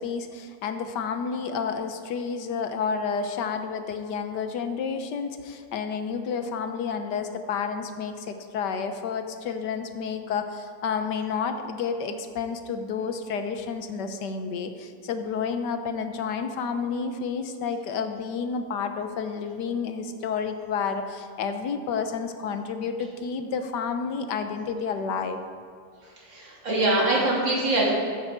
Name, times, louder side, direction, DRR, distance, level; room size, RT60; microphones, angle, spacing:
voice 1, 0.0-25.4, left 6 dB, 70° left, 7 dB, 1.4 m, -30 dB
voice 2, 26.3-27.9, right 2 dB, 90° right, -5 dB, 3.6 m, -23 dB
15.0 x 8.9 x 4.6 m, 2.4 s
omnidirectional pair, 2.0 m